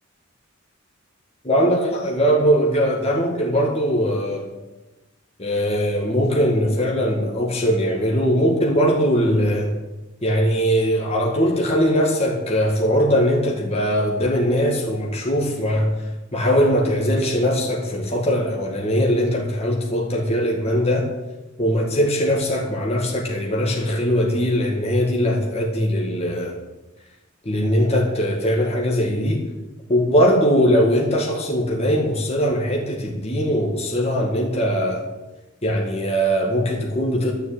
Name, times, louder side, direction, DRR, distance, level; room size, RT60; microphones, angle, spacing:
voice 1, 1.4-4.5 5.4-9.7 10.2-15.9 16.3-21.1 21.6-26.5 27.4-29.5 29.9-35.1 35.6-37.3, equal, 30° left, -1 dB, 1.8 m, -20 dB
12.0 x 7.2 x 9.0 m, 1.1 s
head